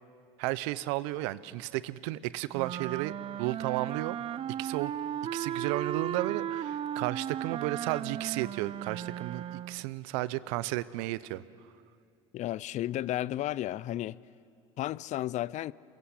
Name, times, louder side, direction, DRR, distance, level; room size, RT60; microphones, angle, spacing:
voice 1, 0.4-4.2 4.6-4.9 5.3-11.4, right 17 dB, 75° right, 0.8 m, -33 dB
sound 1, 2.5-9.9, right 10 dB, 35° right, 0.5 m, -36 dB
voice 2, 12.3-14.2 14.8-15.7, left 14 dB, 50° left, 0.6 m, -33 dB
22.5 x 22.0 x 8.2 m
hypercardioid pair, 80°, 15 cm